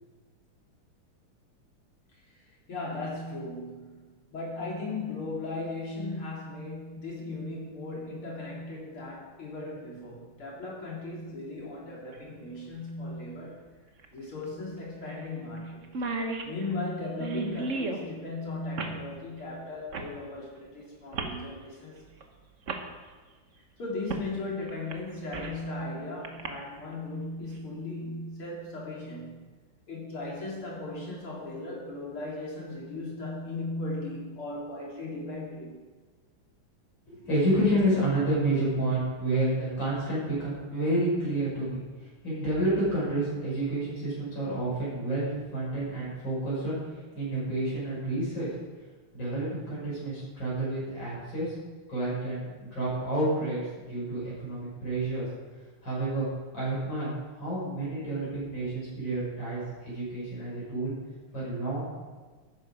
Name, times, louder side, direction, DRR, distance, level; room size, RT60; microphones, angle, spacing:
voice 1, 2.1-2.4 2.7-13.6 14.1-15.9 16.4-22.0 23.8-29.4 29.9-35.8, left 2 dB, 80° left, -4 dB, 4.5 m, -37 dB
sound 1, 12.1-12.2 14.0-14.1 14.4-14.5 15.1-15.3 15.6-15.7 15.8-18.0 18.8-19.0 19.9-20.1 21.1-21.4 22.2-22.3 22.7-22.8 24.1-24.3 24.7-25.6 26.2-26.5, right 3 dB, 45° right, 1.3 m, -34 dB
voice 2, 37.1-41.8 42.2-46.8 47.1-48.5 49.1-51.5 51.9-55.3 55.8-56.3 56.5-60.9 61.3-61.8, right 1 dB, 60° left, -7 dB, 6.0 m, -29 dB
13.5 x 11.0 x 5.0 m, 1.4 s
omnidirectional pair, 2.3 m